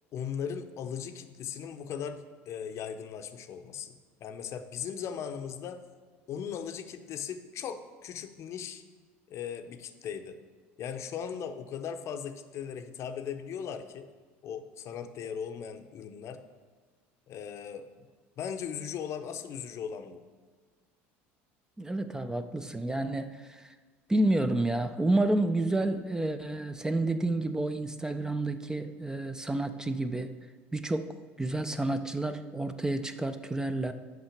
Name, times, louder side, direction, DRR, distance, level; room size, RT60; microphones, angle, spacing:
voice 1, 0.1-3.9 4.2-5.8 6.3-8.8 9.3-10.4 10.8-14.1 14.4-16.4 17.3-17.9 18.4-20.2, left 7 dB, 50° left, 9 dB, 0.6 m, -38 dB
voice 2, 21.8-23.7 24.1-30.3 30.7-33.9, right 2 dB, 10° right, 9 dB, 0.4 m, -30 dB
5.8 x 5.4 x 5.8 m, 1.5 s
supercardioid pair, 95°, 6 cm